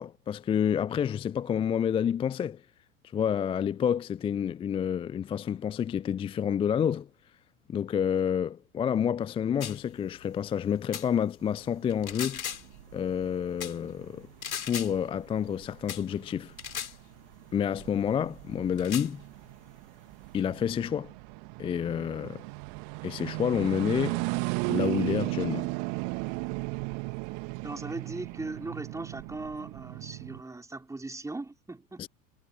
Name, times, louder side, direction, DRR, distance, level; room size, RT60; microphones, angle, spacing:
voice 1, 0.0-2.6 3.1-7.1 7.7-12.4 12.9-14.3 14.6-16.5 17.5-19.2 20.3-21.1 21.6-22.4 23.0-24.2 24.7-25.7 32.0-32.1, left 8 dB, 15° left, 0.5 m, -29 dB
sound 1, 9.6-9.8 10.9-11.1 11.9-12.7 13.6-13.8 14.4-14.9 15.9-16.1 16.6-17.0 17.8-17.9 18.8-19.1, left 8 dB, 70° left, 4.1 m, -36 dB
sound 2, 11.5-30.4, right 40 dB or more, 45° right, 1.9 m, -36 dB
voice 2, 27.6-32.1, right 2 dB, 5° right, 3.9 m, -39 dB
figure-of-eight pair, 85°, 42 cm